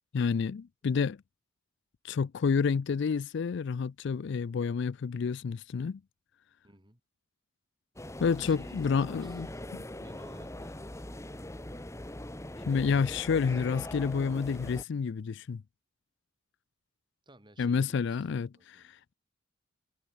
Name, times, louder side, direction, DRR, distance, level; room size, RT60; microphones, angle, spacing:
voice 1, 0.1-1.2 2.0-6.0 8.2-9.5 9.7-9.8 12.7-15.6 17.6-19.1, left 5 dB, 60° left, 0.4 m, -29 dB
voice 2, 6.6-7.0 8.4-11.2 17.2-18.9, right 1 dB, 25° right, 6.7 m, -57 dB
sound 1, 8.0-14.8, left 1 dB, 15° left, 1.4 m, -41 dB
head